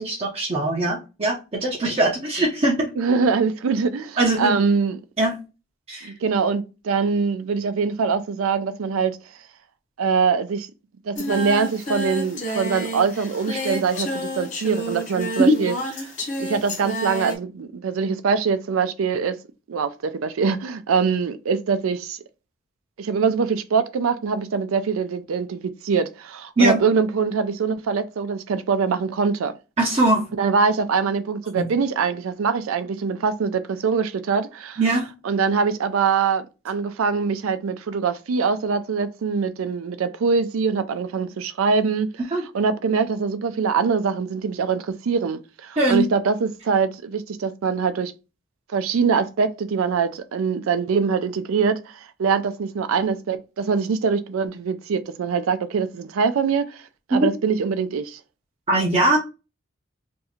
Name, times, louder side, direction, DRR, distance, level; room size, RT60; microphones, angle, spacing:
voice 1, 0.0-2.9 4.2-4.6 5.2-5.3 5.9-6.1 15.4-15.5 26.6-26.8 29.8-30.2 31.5-31.7 34.8-35.1 42.3-42.4 45.8-46.1 57.1-57.3 58.7-59.2, right 1 dB, 30° right, 0.6 m, -20 dB
voice 2, 3.0-5.0 6.0-9.2 10.0-10.7 11.1-15.7 16.0-16.1 16.4-19.4 19.7-22.2 23.0-29.5 30.4-34.8 35.2-42.1 42.5-48.1 48.7-56.8 57.1-58.2, right 5 dB, 90° right, 0.4 m, -23 dB
Singing, 11.2-17.4, equal, 35° left, 0.7 m, -30 dB
2.6 x 2.4 x 4.1 m
head